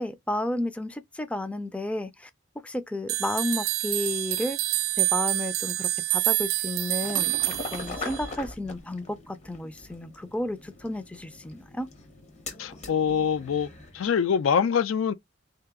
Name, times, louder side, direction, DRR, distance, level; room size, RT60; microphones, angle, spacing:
voice 1, 0.0-2.3 2.6-4.6 5.0-7.3 7.7-11.9, left 1 dB, 5° left, 0.3 m, -32 dB
sound 1, 3.1-8.3, right 18 dB, 90° right, 0.3 m, -27 dB
sound 2, 7.0-14.0, left 3 dB, 35° left, 0.7 m, -41 dB
voice 2, 12.6-13.7 13.9-15.1, left 7 dB, 85° left, 0.4 m, -24 dB
3.2 x 2.9 x 3.5 m
head